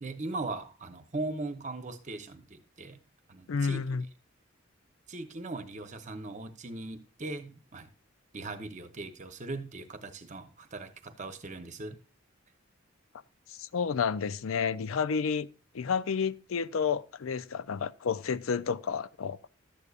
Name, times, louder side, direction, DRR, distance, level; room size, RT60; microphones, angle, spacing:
voice 1, 0.0-3.0 3.3-3.8 5.1-7.9 8.3-12.0, right 2 dB, 35° right, 0.9 m, -39 dB
voice 2, 3.5-4.1 13.5-15.5 15.7-19.4, left 6 dB, 85° left, 0.5 m, -30 dB
12.0 x 8.2 x 2.4 m
head